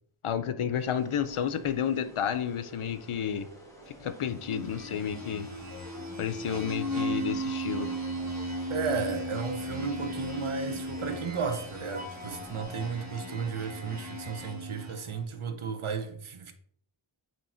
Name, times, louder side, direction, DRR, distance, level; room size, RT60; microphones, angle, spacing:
voice 1, 0.2-3.5 4.0-5.5 6.2-7.9, left 8 dB, 85° left, 0.6 m, -31 dB
sound 1, 0.6-12.6, right 1 dB, 5° left, 1.8 m, -52 dB
sound 2, 4.3-15.2, equal, 35° right, 1.5 m, -36 dB
voice 2, 8.7-16.5, right 5 dB, 75° right, 0.9 m, -34 dB
8.1 x 2.9 x 4.3 m
wide cardioid pair, 60°, 49 cm